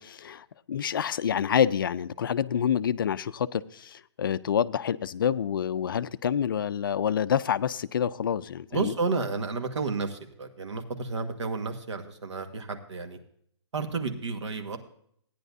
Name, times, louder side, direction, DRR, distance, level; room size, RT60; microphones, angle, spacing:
voice 1, 0.0-8.9, left 8 dB, 50° left, 14 dB, 0.4 m, -27 dB
voice 2, 8.7-13.2 13.7-14.8, right 4 dB, 80° right, 5 dB, 1.6 m, -31 dB
15.0 x 10.0 x 2.7 m, 0.66 s
hypercardioid pair, 165°, 15 cm